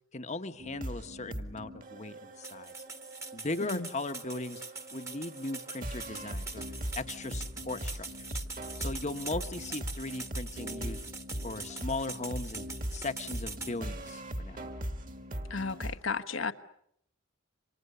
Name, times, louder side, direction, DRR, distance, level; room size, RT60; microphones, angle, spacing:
voice 1, 0.1-2.7 3.3-4.6 4.9-6.6 7.0-8.1 8.8-11.0 11.4-12.6 12.9-14.7, left 2 dB, 35° left, 9 dB, 1.2 m, -38 dB
sound 1, 0.6-16.0, equal, 40° right, 2.4 m, -40 dB
sound 2, 2.4-13.7, right 3 dB, 15° right, 1.5 m, -43 dB
voice 2, 15.5-16.5, left 4 dB, 70° left, 9 dB, 1.3 m, -34 dB
29.5 x 26.5 x 6.8 m, 0.72 s
head